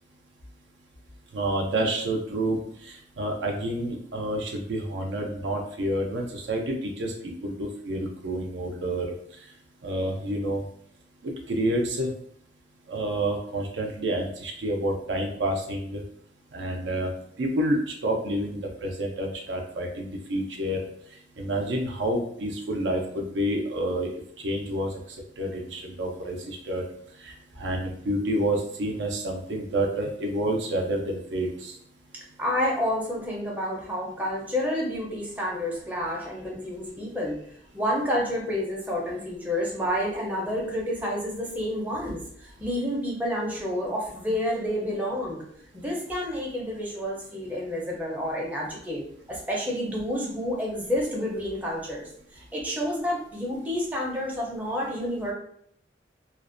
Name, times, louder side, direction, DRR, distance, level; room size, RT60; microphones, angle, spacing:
voice 1, 1.3-9.1 9.8-10.6 11.2-12.1 12.9-16.0 16.5-17.1 17.4-20.8 21.4-24.9 25.4-26.8 27.2-31.7, right 1 dB, 70° right, 1 dB, 0.5 m, -29 dB
voice 2, 32.4-37.4 37.7-45.4 45.7-49.0 49.3-55.3, equal, 10° right, -3 dB, 0.5 m, -29 dB
2.4 x 2.1 x 2.5 m, 0.64 s
head